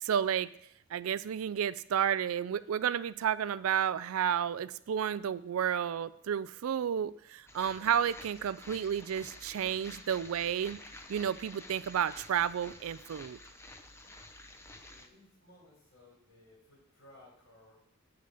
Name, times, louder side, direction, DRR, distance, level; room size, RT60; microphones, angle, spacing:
voice 1, 0.0-0.5 0.9-10.8 11.1-13.4, right 8 dB, 75° right, 16 dB, 0.4 m, -31 dB
sound 1, 7.5-15.1, left 2 dB, 10° left, 0.6 m, -50 dB
voice 2, 14.8-17.8, left 1 dB, 60° left, -4 dB, 4.2 m, -59 dB
9.6 x 3.9 x 6.9 m, 0.70 s
head